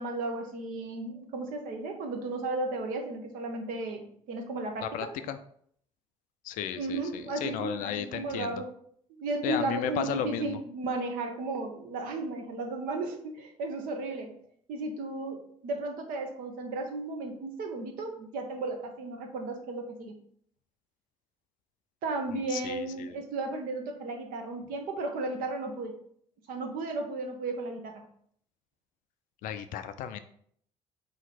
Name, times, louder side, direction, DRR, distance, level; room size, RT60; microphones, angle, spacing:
voice 1, 0.0-5.1 6.7-8.7 9.1-14.3 14.7-20.2 22.0-26.0 26.5-28.0, right 3 dB, 60° right, 4 dB, 1.0 m, -34 dB
voice 2, 4.8-5.4 6.4-8.6 9.4-10.6 22.5-23.2 29.4-30.2, left 9 dB, 55° left, 10 dB, 0.4 m, -34 dB
4.2 x 3.0 x 4.1 m, 0.64 s
figure-of-eight pair, 55°, 16 cm